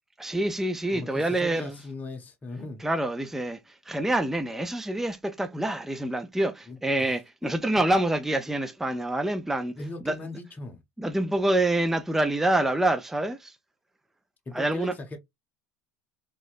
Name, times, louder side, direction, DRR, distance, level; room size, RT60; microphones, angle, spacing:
voice 1, 0.2-1.7 2.8-3.6 3.9-9.7 10.1-10.2 11.0-13.5 14.5-14.9, right 1 dB, 5° right, 0.5 m, -26 dB
voice 2, 0.9-2.8 6.7-7.1 7.4-7.5 9.8-10.8 14.5-15.2, left 2 dB, 25° left, 1.2 m, -38 dB
4.0 x 3.0 x 2.5 m
hypercardioid pair, 90°, 7 cm